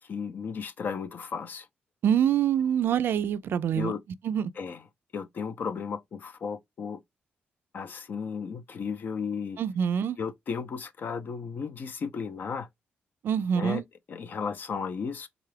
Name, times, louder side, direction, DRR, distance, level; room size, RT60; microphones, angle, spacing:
voice 1, 0.1-1.7 3.7-4.0 4.6-4.8 5.1-7.0 7.7-9.6 10.2-12.7 13.5-13.8 14.1-15.3, left 6 dB, 50° left, 0.4 m, -34 dB
voice 2, 2.0-3.9 4.2-4.5 9.6-10.2 13.2-13.8, right 9 dB, 65° right, 0.3 m, -25 dB
3.7 x 2.3 x 3.2 m
cardioid pair, 115°, 4 cm